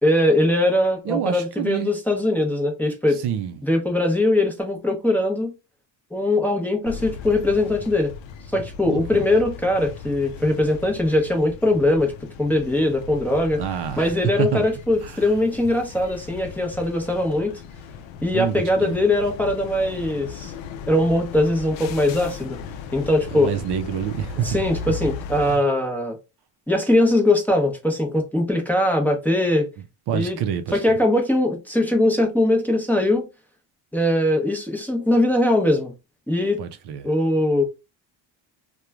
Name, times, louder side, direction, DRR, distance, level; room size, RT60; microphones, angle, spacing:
voice 1, 0.0-3.2 3.6-5.5 6.1-8.1 8.5-12.1 12.4-13.6 14.0-17.5 18.2-20.5 20.9-22.6 22.9-23.5 24.4-26.2 26.7-29.7 30.1-30.4 30.7-33.3 33.9-35.9 36.3-36.6 37.0-37.6, left 1 dB, 5° left, 0.6 m, -21 dB
voice 2, 1.1-1.9 3.1-3.6 8.8-9.3 13.6-14.6 15.0-15.2 18.3-19.0 23.3-24.6 25.5-25.6 30.1-30.8 36.6-37.1, right 9 dB, 60° right, 0.5 m, -27 dB
sound 1, 6.9-25.6, left 6 dB, 75° left, 0.6 m, -37 dB
3.0 x 2.2 x 2.3 m
cardioid pair, 130°, 47 cm